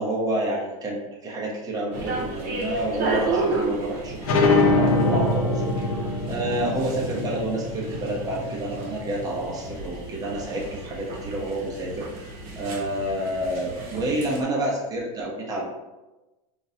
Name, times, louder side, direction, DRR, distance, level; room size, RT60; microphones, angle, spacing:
voice 1, 0.0-12.3 12.6-15.7, right 1 dB, 20° right, -2 dB, 0.8 m, -29 dB
sound 1, 1.9-14.4, right 2 dB, 50° right, 0.9 m, -33 dB
sound 2, 4.2-9.5, left 2 dB, 75° left, 0.7 m, -24 dB
3.8 x 2.5 x 2.8 m, 1.1 s
supercardioid pair, 120°, 19 cm